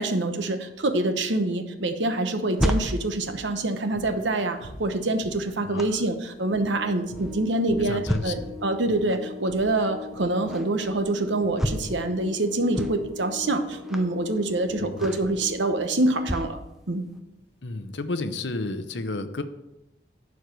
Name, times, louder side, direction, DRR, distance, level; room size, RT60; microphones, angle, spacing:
voice 1, 0.0-16.6 16.9-17.0, right 2 dB, 80° right, 7 dB, 1.0 m, -26 dB
sound 1, 2.2-16.6 17.1-17.2, equal, ahead, 0.6 m, -34 dB
sound 2, 3.2-18.1, equal, 30° left, 3.3 m, -47 dB
voice 2, 5.7-6.0 7.8-8.5 14.8-15.2 17.6-19.4, left 3 dB, 70° left, 9 dB, 0.8 m, -32 dB
sound 3, 6.4-16.3, left 5 dB, 20° right, 2.8 m, -42 dB
11.5 x 4.7 x 5.2 m, 0.90 s
head